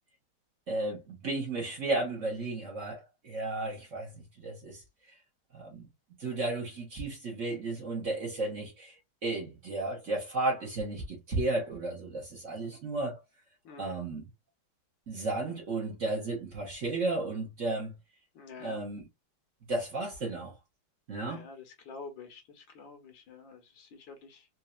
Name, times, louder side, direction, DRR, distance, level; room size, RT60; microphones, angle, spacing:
voice 1, 0.7-4.1 4.4-5.1 5.5-5.9 6.2-8.9 9.2-13.2 13.8-14.2 15.1-17.9 18.6-19.1 19.7-20.5 21.1-21.4, right 2 dB, 45° right, 1.3 m, -33 dB
voice 2, 13.6-14.0 18.3-18.8 21.2-24.5, left 4 dB, 70° left, 1.7 m, -48 dB
4.3 x 2.7 x 2.4 m
omnidirectional pair, 2.2 m